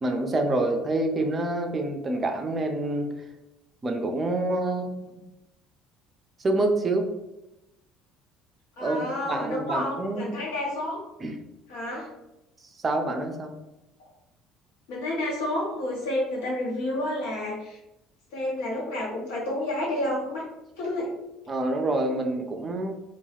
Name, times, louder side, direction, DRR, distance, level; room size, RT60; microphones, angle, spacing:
voice 1, 0.0-3.1 3.8-5.2 6.4-7.1 8.8-10.3 11.2-11.3 12.8-13.5 21.5-22.9, right 2 dB, 30° right, 4 dB, 0.5 m, -27 dB
voice 2, 8.8-11.0 11.7-12.1 14.9-17.8 18.3-20.4 20.8-21.1, left 1 dB, 70° left, -5 dB, 1.0 m, -30 dB
2.3 x 2.2 x 3.2 m, 0.93 s
figure-of-eight pair, 55°, 0 cm